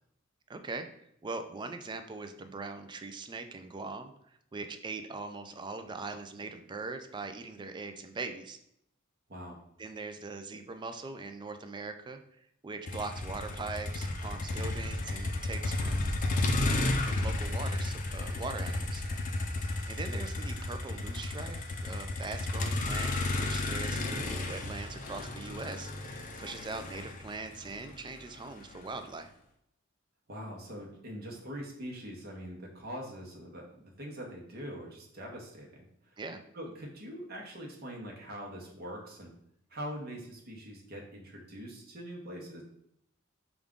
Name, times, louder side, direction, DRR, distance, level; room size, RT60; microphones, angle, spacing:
voice 1, 0.5-0.9 1.2-8.6 9.8-12.2 12.6-16.1 16.6-19.5 19.9-29.3 36.2-36.4, right 3 dB, 25° right, 8 dB, 0.3 m, -41 dB
voice 2, 9.3-9.6 23.9-24.1 30.3-36.2 36.5-39.3 39.7-42.6, equal, 50° right, -1 dB, 0.9 m, -43 dB
Motor vehicle (road), 12.9-29.0, left 2 dB, 40° left, 0.4 m, -33 dB
5.0 x 2.4 x 3.6 m, 0.73 s
head